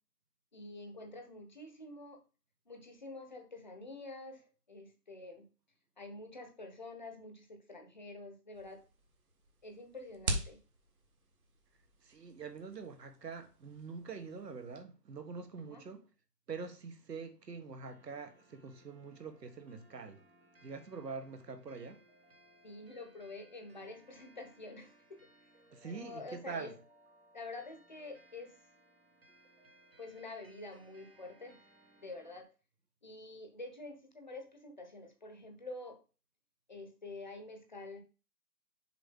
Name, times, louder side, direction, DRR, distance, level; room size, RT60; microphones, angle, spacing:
voice 1, 0.5-2.2 2.7-5.4 6.0-8.8 9.6-10.6 15.6-15.8 22.6-25.2 25.8-26.7 27.3-28.5 30.0-31.6 32.0-32.5 33.0-36.0 36.7-38.0, left 2 dB, 30° left, 1.0 m, -48 dB
sound 1, 8.5-14.8, right 1 dB, 60° right, 1.7 m, -44 dB
voice 2, 12.0-16.1 16.5-20.2 20.6-22.0 25.7-26.7, right 5 dB, 75° right, 1.6 m, -45 dB
sound 2, 17.9-32.4, right 1 dB, 40° right, 1.2 m, -65 dB
6.8 x 4.8 x 3.7 m
hypercardioid pair, 180°, 48 cm